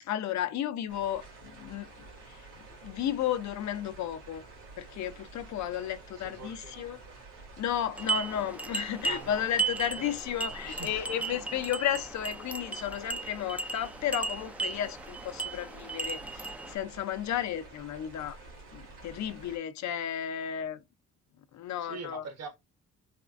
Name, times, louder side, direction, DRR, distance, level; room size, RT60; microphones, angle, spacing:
voice 1, 0.0-1.9 2.3-2.5 2.8-4.4 4.8-7.0 7.6-18.4 18.7-20.8 21.5-22.2, left 10 dB, 65° left, 0.6 m, -33 dB
sound 1, 0.9-19.6, right 3 dB, 80° right, 2.3 m, -50 dB
voice 2, 6.2-7.2 9.0-10.2 10.7-11.4 21.8-22.6, right 4 dB, 60° right, 1.1 m, -45 dB
sound 2, 7.9-16.8, right 4 dB, 5° right, 0.3 m, -36 dB
4.3 x 2.3 x 2.4 m
cardioid pair, 90°, 30 cm